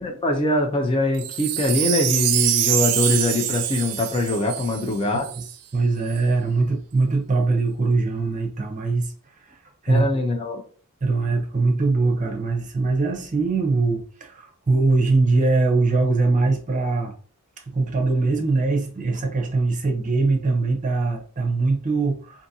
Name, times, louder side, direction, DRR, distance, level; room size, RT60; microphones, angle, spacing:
voice 1, 0.0-5.2 9.9-10.6, left 2 dB, 25° left, 2 dB, 0.4 m, -23 dB
Wind chime, 1.2-5.5 6.1-6.2, right 12 dB, 80° right, 0.3 m, -25 dB
voice 2, 5.7-9.1 9.8-10.0 11.0-17.1 17.7-22.5, right 3 dB, 35° right, 3 dB, 0.6 m, -22 dB
2.6 x 2.5 x 2.6 m, 0.42 s
head